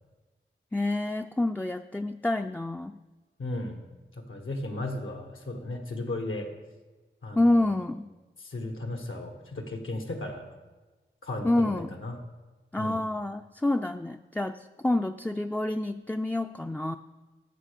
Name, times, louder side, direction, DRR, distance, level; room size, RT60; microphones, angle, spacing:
voice 1, 0.7-3.0 7.4-8.1 11.4-11.9 12.7-17.0, left 1 dB, 5° left, 6 dB, 0.3 m, -28 dB
voice 2, 3.4-3.8 4.1-6.5 7.2-7.7 8.4-10.5 11.2-12.2 12.8-13.0, left 2 dB, 80° left, 3 dB, 1.5 m, -35 dB
12.5 x 6.4 x 5.2 m, 1.2 s
wide cardioid pair, 65°, 20 cm